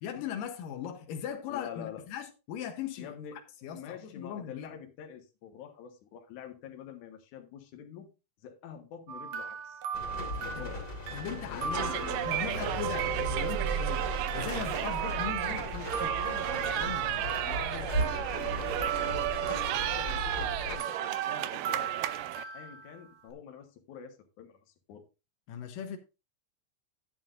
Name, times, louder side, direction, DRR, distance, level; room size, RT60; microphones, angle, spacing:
voice 1, 0.0-3.1 3.6-4.7 10.1-10.7 11.1-12.0 12.2-17.4 25.5-26.0, left 8 dB, 90° left, 2.7 m, -39 dB
voice 2, 1.5-2.0 3.0-3.4 3.7-8.1 8.4-9.8 10.4-10.8 11.5-12.7 17.4-21.9 22.5-24.6 24.9-25.0, left 8 dB, 70° left, 2.7 m, -46 dB
sound 1, 9.1-13.8 14.3-18.6 18.8-23.3, right 7 dB, 65° right, 2.2 m, -39 dB
sound 2, 9.9-20.8, equal, 35° left, 2.7 m, -36 dB
sound 3, 11.7-22.4, right 13 dB, 85° right, 2.3 m, -33 dB
11.5 x 9.3 x 2.6 m
omnidirectional pair, 3.8 m